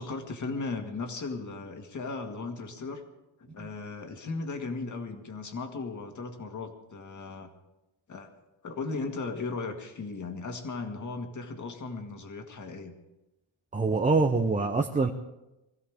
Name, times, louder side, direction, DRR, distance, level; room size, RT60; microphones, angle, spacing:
voice 1, 0.0-3.0 3.4-7.5 8.1-8.3 8.6-12.9, left 3 dB, 40° left, 4 dB, 1.9 m, -36 dB
voice 2, 13.7-15.1, right 3 dB, 15° right, 3 dB, 0.7 m, -25 dB
22.5 x 15.5 x 3.6 m, 0.96 s
cardioid pair, 140°, 45 cm